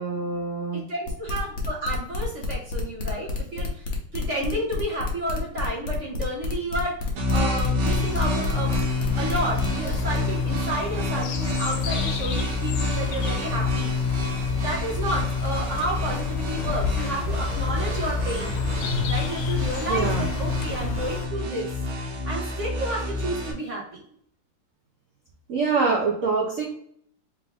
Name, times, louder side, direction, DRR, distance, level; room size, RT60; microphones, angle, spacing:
voice 1, 0.0-0.8 19.9-20.3 25.5-26.6, right 4 dB, 65° right, -1 dB, 0.8 m, -25 dB
voice 2, 0.7-3.9 4.1-8.7 9.2-14.2 14.6-18.6 19.1-21.7 22.2-24.0, right 1 dB, 45° right, -3 dB, 1.0 m, -31 dB
sound 1, 1.1-10.2, left 3 dB, 50° left, 0.9 m, -30 dB
sound 2, 7.2-23.5, left 3 dB, 80° right, 1.8 m, -27 dB
sound 3, 7.8-21.3, left 4 dB, 85° left, 0.9 m, -33 dB
3.6 x 3.5 x 3.5 m, 0.66 s
omnidirectional pair, 2.3 m